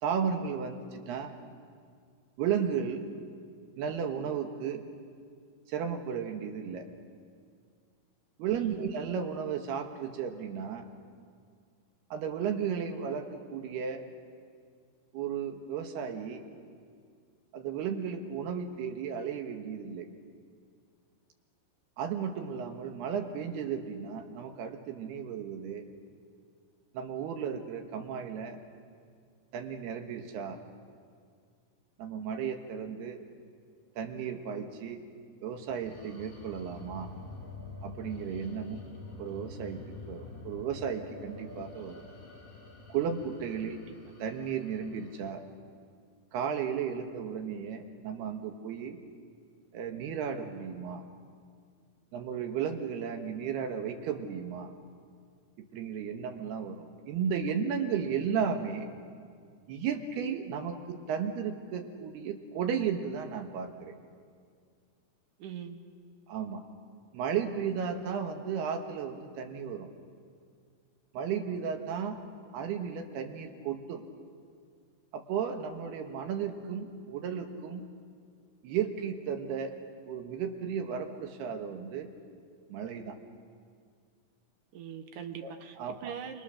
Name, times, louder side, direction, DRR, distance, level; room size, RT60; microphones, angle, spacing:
voice 1, 0.0-1.3 2.4-3.1 3.8-4.8 5.7-6.8 8.4-10.9 12.1-14.1 15.1-16.4 17.5-20.1 22.0-25.8 26.9-28.6 29.5-30.6 32.0-33.2 34.0-35.0 35.4-37.1 37.8-38.9 39.2-39.8 40.1-42.0 42.9-43.8 44.2-45.4 46.3-49.0 49.7-51.0 52.1-54.7 55.7-58.9 59.7-64.0 66.3-66.6 67.1-69.9 71.1-72.2 72.5-74.0 75.1-77.9 78.6-79.7 80.1-82.1 82.7-83.2 85.4-86.1, right 7 dB, 90° right, 5 dB, 3.6 m, -34 dB
voice 2, 8.5-8.9 43.7-43.8 65.4-65.8 84.7-85.8 86.0-86.4, right 8 dB, 65° right, 6 dB, 2.6 m, -42 dB
sound 1, 35.6-45.3, left 2 dB, 40° left, 5.4 m, -47 dB
28.5 x 27.0 x 6.5 m, 2.1 s
omnidirectional pair, 4.5 m